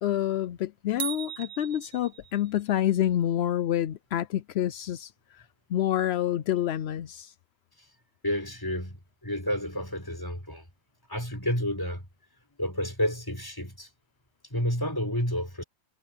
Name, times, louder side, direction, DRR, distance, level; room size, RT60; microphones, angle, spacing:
voice 1, 0.0-5.4 5.7-7.3, left 11 dB, 65° left, 0.6 m, -28 dB
sound 1, 1.0-2.6, right 8 dB, 65° right, 1.4 m, -37 dB
voice 2, 8.2-10.7 11.1-12.0 12.6-13.9 14.5-15.6, equal, 15° left, 4.6 m, -30 dB
omnidirectional pair, 1.6 m